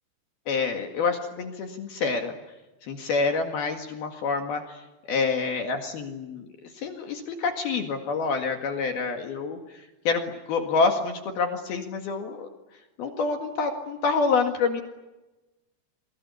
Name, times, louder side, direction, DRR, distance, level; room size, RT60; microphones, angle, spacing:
voice 1, 0.5-2.3 2.8-4.8 5.1-6.5 6.8-9.6 10.0-12.5 13.0-14.8, left 4 dB, 55° left, 4 dB, 3.3 m, -27 dB
29.0 x 23.0 x 8.5 m, 1.1 s
omnidirectional pair, 5.9 m